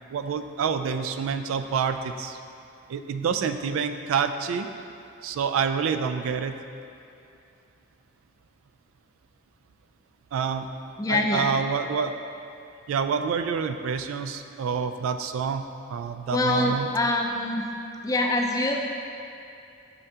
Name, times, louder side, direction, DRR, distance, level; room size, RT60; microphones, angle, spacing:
voice 1, 0.1-2.4 2.9-4.7 5.2-6.6 10.3-10.7 11.1-12.1 12.9-16.9, right 6 dB, 90° right, 8 dB, 0.3 m, -27 dB
voice 2, 11.0-11.5 16.3-17.7 18.0-18.8, left 2 dB, 15° left, 2 dB, 0.4 m, -24 dB
6.5 x 5.6 x 2.8 m, 2.6 s
head